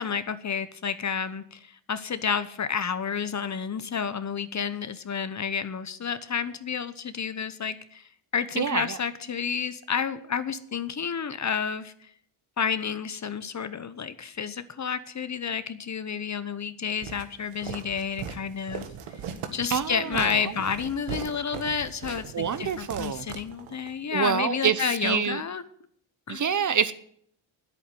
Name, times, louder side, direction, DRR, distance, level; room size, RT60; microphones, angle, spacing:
voice 1, 0.0-8.0 8.3-12.1 12.6-18.9 19.5-25.6 26.3-26.4, left 6 dB, 35° left, 13 dB, 0.9 m, -30 dB
voice 2, 8.6-9.0 19.7-20.5 22.3-23.3 24.1-25.4 26.3-26.9, right 7 dB, 40° right, 14 dB, 0.8 m, -27 dB
Walk footsteps, 17.0-23.9, right 7 dB, 85° right, 1.7 m, -39 dB
10.0 x 8.7 x 9.0 m, 0.65 s
cardioid pair, 100°, 49 cm